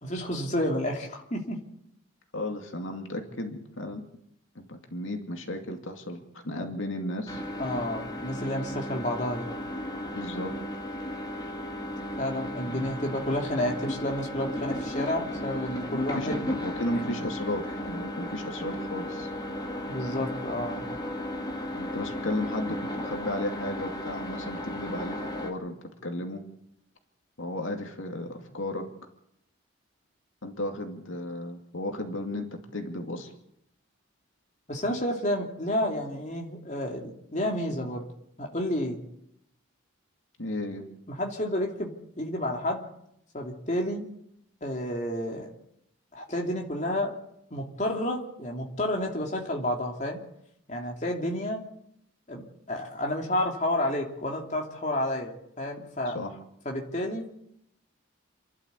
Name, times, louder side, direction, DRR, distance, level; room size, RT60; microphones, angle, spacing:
voice 1, 0.0-1.6 7.6-9.5 12.2-16.4 19.9-20.8 34.7-38.0 38.4-39.0 41.1-42.9 43.3-44.1 44.6-45.5 46.1-47.1 47.5-50.2 50.7-51.6 52.3-52.4 52.7-56.2 56.6-57.2, left 1 dB, 35° left, 0 dB, 2.9 m, -30 dB
voice 2, 2.3-4.0 4.6-7.4 10.1-10.5 12.7-13.0 15.9-19.3 21.7-26.4 27.4-28.9 30.4-33.3 40.4-40.8 56.1-56.4, left 1 dB, 70° left, 3 dB, 2.4 m, -34 dB
sound 1, 7.3-25.5, left 1 dB, 20° left, 2.3 m, -35 dB
28.5 x 12.0 x 8.3 m, 0.77 s
head